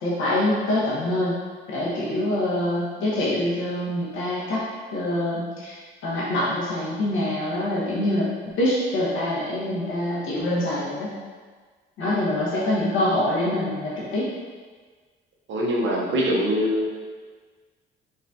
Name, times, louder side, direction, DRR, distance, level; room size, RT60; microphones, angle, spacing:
voice 1, 0.0-1.3 1.7-4.6 4.9-5.8 6.0-11.2 12.0-14.3, left 1 dB, 90° left, -7 dB, 1.4 m, -25 dB
voice 2, 15.5-16.9, equal, 70° right, -2 dB, 0.9 m, -23 dB
4.1 x 4.0 x 2.7 m, 1.5 s
cardioid pair, 90°, 20 cm